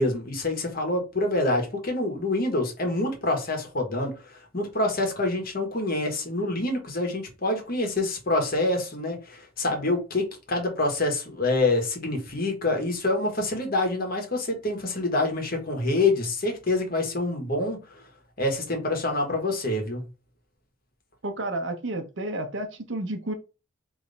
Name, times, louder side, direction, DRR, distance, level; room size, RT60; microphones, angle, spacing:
voice 1, 0.0-18.0 18.4-20.1, left 2 dB, 50° left, 1.5 m, -26 dB
voice 2, 21.2-23.3, right 1 dB, 70° right, 0.9 m, -31 dB
3.4 x 3.1 x 4.1 m
head